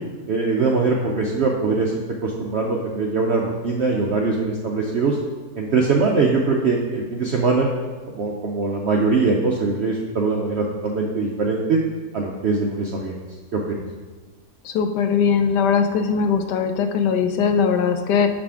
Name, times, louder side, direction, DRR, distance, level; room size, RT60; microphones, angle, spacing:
voice 1, 0.3-5.2 5.6-7.7 8.1-11.8 12.1-13.2 13.5-13.8, right 4 dB, 70° right, -1 dB, 0.6 m, -22 dB
voice 2, 14.6-18.3, left 6 dB, 85° left, 7 dB, 1.2 m, -20 dB
7.0 x 5.0 x 3.5 m, 1.4 s
omnidirectional pair, 1.8 m